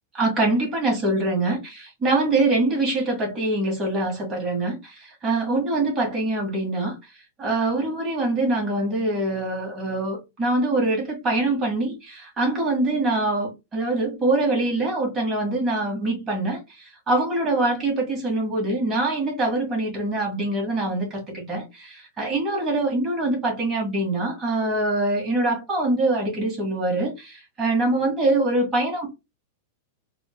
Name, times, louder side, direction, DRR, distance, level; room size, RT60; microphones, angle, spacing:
voice 1, 0.1-4.9 5.2-6.9 7.4-16.6 17.1-29.1, right 2 dB, 20° right, 1.8 m, -24 dB
4.1 x 3.2 x 2.2 m
supercardioid pair, 145°, 0 cm